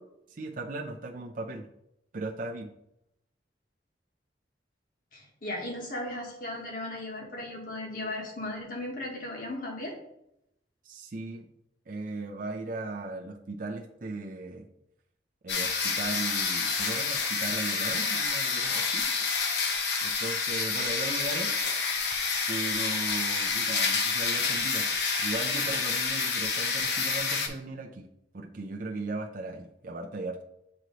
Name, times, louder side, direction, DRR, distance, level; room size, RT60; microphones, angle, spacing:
voice 1, 0.3-1.7 2.1-2.7 10.8-11.5 11.9-14.7 15.4-19.4 20.0-21.5 22.5-24.9 25.2-28.1 28.3-30.4, right 2 dB, 50° right, 1 dB, 0.5 m, -37 dB
voice 2, 5.1-9.9, left 1 dB, 50° left, 0 dB, 1.4 m, -36 dB
sound 1, 15.5-27.5, left 4 dB, 70° left, 0.8 m, -28 dB
7.9 x 3.1 x 3.9 m, 0.80 s
head